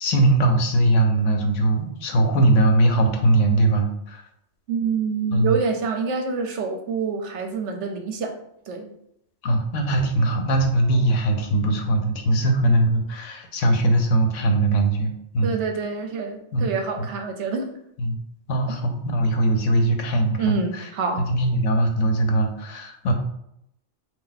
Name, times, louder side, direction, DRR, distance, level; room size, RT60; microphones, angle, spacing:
voice 1, 0.0-4.2 5.3-5.5 9.4-15.5 16.5-16.7 18.0-18.2 18.5-20.5 21.3-23.1, right 1 dB, 80° left, 5 dB, 1.1 m, -20 dB
voice 2, 4.7-8.3 8.7-8.9 15.4-17.7 20.4-21.3, right 5 dB, 75° right, 4 dB, 0.9 m, -26 dB
4.3 x 2.5 x 3.9 m, 0.76 s
omnidirectional pair, 1.3 m